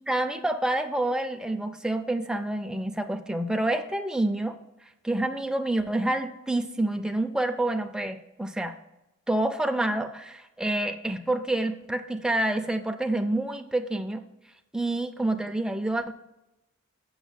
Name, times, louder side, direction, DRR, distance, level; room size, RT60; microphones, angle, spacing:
voice 1, 0.1-4.6 5.0-8.8 9.3-14.2 14.7-16.1, right 1 dB, 5° right, 6 dB, 0.4 m, -28 dB
7.2 x 6.4 x 7.3 m, 0.95 s
head